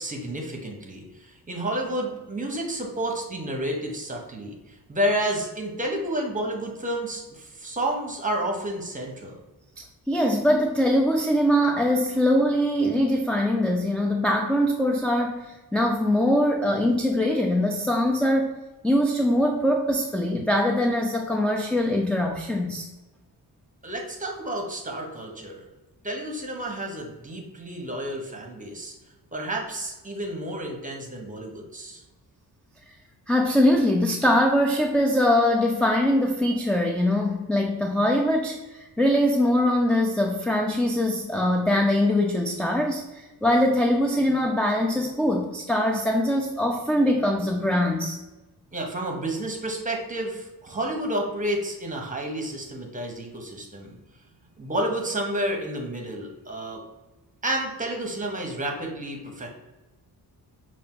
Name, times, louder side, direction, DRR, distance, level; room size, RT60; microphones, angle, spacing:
voice 1, 0.0-9.4 23.8-25.6 26.0-28.9 29.3-32.0 48.7-53.9 54.6-56.8 57.4-59.5, right 1 dB, 20° right, 1 dB, 1.0 m, -30 dB
voice 2, 10.1-15.4 15.7-18.6 18.8-22.9 33.3-48.2, left 1 dB, 5° left, 1 dB, 0.3 m, -22 dB
5.5 x 2.6 x 3.7 m, 1.1 s
cardioid pair, 105°, 39 cm